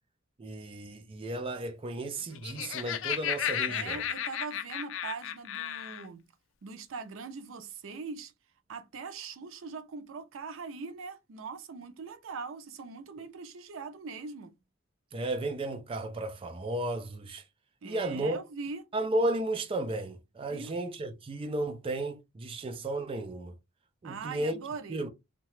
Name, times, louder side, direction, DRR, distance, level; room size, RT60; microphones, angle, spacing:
voice 1, 0.4-4.0 15.1-17.4 17.8-18.4 18.9-23.5 24.0-24.6 24.9-25.1, right 1 dB, 30° right, 0.4 m, -33 dB
Laughter, 2.2-6.1, left 9 dB, 70° left, 0.4 m, -34 dB
voice 2, 3.7-6.2 6.6-8.3 8.7-14.5 17.8-18.8 20.5-20.7 24.0-25.1, right 4 dB, 85° right, 0.5 m, -41 dB
2.8 x 2.2 x 3.0 m
head